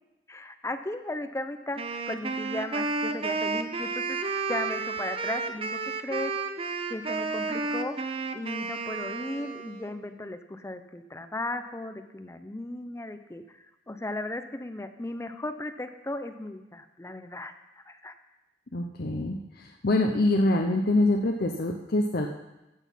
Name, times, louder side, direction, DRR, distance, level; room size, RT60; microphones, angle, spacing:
voice 1, 0.3-4.2 4.5-6.3 6.9-8.1 8.3-17.5 17.9-18.1, left 1 dB, 15° left, 8 dB, 0.6 m, -36 dB
Wind instrument woodwind instrument, 1.8-9.9, right 4 dB, 30° right, 0.6 m, -32 dB
voice 2, 18.7-19.4 19.8-22.3, left 2 dB, 55° left, 2 dB, 0.7 m, -24 dB
14.5 x 6.1 x 5.5 m, 0.99 s
head